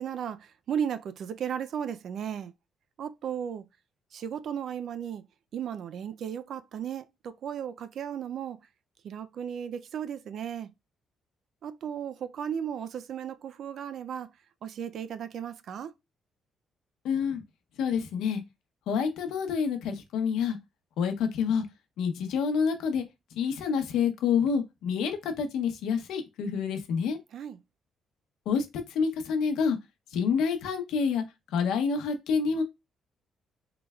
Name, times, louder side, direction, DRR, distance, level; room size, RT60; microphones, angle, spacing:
voice 1, 0.0-2.5 3.0-3.6 4.1-5.2 5.5-8.6 9.0-10.7 11.6-14.3 14.6-15.9 27.3-27.6, right 8 dB, 65° right, 0.4 m, -35 dB
voice 2, 17.0-17.4 17.8-18.4 18.9-20.6 21.0-21.7 22.0-23.0 23.4-27.2 28.5-28.6 28.9-29.8 30.1-31.2 31.5-32.6, left 6 dB, 85° left, 0.8 m, -27 dB
3.8 x 3.2 x 2.3 m
cardioid pair, 90°, 0 cm